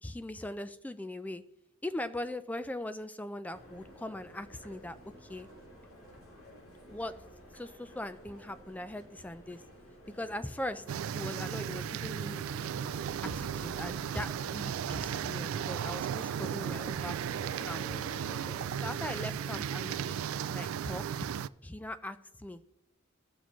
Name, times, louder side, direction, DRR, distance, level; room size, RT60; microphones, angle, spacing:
voice 1, 0.0-1.4 1.8-5.5 6.9-7.1 7.5-9.6 10.1-10.8 11.1-12.4 13.2-17.8 18.8-20.3 20.5-21.1 21.6-22.6, left 1 dB, 5° left, 12 dB, 0.4 m, -40 dB
sound 1, 3.5-20.7, equal, 85° left, 3.0 m, -52 dB
sound 2, 10.9-21.5, right 8 dB, 70° right, 0.3 m, -35 dB
sound 3, 11.3-18.9, right 2 dB, 25° left, 2.0 m, -52 dB
17.0 x 6.2 x 3.0 m, 0.82 s
head